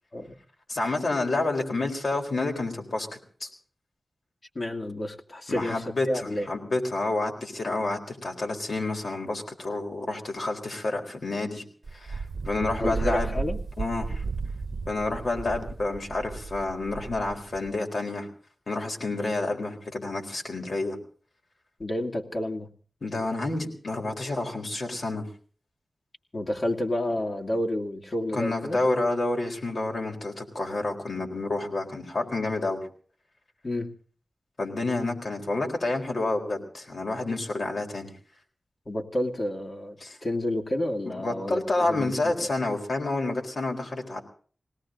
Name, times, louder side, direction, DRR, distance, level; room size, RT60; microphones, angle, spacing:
voice 1, 0.7-3.5 5.5-11.6 11.9-13.3 13.8-14.2 14.9-18.3 18.7-21.0 23.0-25.3 28.3-32.9 34.6-38.1 40.0-40.2 41.1-44.2, left 2 dB, 65° left, 2 dB, 4.1 m, -29 dB
voice 2, 4.5-6.5 12.8-13.6 21.8-22.7 26.3-28.8 33.6-33.9 38.9-41.6 41.9-42.3, left 1 dB, 45° left, 2 dB, 2.3 m, -30 dB
Wind, 11.8-17.8, right 4 dB, 65° right, 0.8 m, -34 dB
21.0 x 18.0 x 3.8 m, 0.43 s
wide cardioid pair, 70°, 0 cm